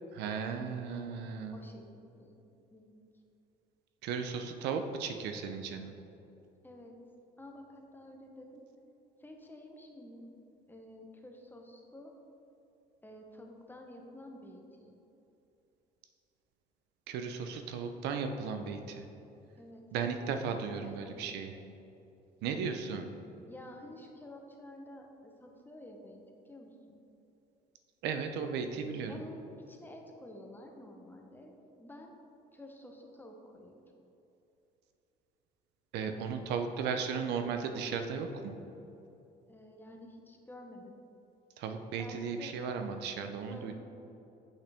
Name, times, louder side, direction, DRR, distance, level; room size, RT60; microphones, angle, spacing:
voice 1, 0.1-1.6 4.0-5.9 17.1-19.0 19.9-21.5 22.4-23.1 28.0-29.2 35.9-38.5 41.6-43.8, right 6 dB, 85° right, 7 dB, 0.6 m, -36 dB
voice 2, 1.5-2.3 2.7-3.0 6.6-7.0 7.4-8.7 9.2-10.3 10.7-12.1 13.0-15.0 19.6-19.9 20.3-20.5 20.8-21.4 23.5-27.0 29.1-31.5 31.8-32.1 32.5-33.8 39.5-41.0 42.0-42.6 43.5-43.7, left 1 dB, 10° left, 2 dB, 0.9 m, -50 dB
8.5 x 5.7 x 3.5 m, 2.8 s
cardioid pair, 110°, 17 cm